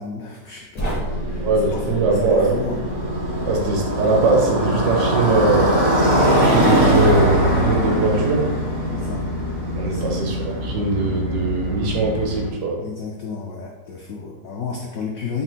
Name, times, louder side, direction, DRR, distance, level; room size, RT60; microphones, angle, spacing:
voice 1, 0.0-1.9 2.2-2.8 8.9-9.3 9.8-10.2 12.8-15.4, left 5 dB, 80° left, -1 dB, 0.7 m, -32 dB
sound 1, 0.7-3.8, right 1 dB, 20° left, 0.4 m, -31 dB
Motorcycle, 1.1-12.5, equal, 85° right, 1.8 m, -21 dB
voice 2, 1.3-2.5 3.5-5.9 6.3-8.5 9.8-12.8, right 3 dB, 70° right, 1 dB, 1.1 m, -21 dB
4.2 x 2.1 x 4.0 m, 1.1 s
omnidirectional pair, 2.0 m